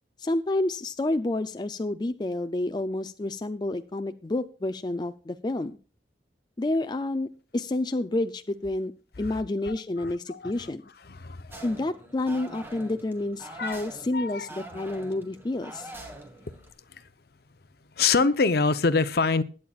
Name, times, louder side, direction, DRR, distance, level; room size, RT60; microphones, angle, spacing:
voice 1, 0.2-5.8 6.6-8.9 9.2-10.8 11.6-15.9, left 2 dB, 25° left, 9 dB, 0.4 m, -29 dB
voice 2, 9.2-11.7 13.5-13.8 14.1-14.5 16.9-17.1 18.0-19.4, left 4 dB, 60° left, 14 dB, 0.7 m, -27 dB
sound 1, 11.5-16.7, right 1 dB, 15° right, 1.5 m, -44 dB
20.5 x 8.7 x 2.4 m, 0.36 s
head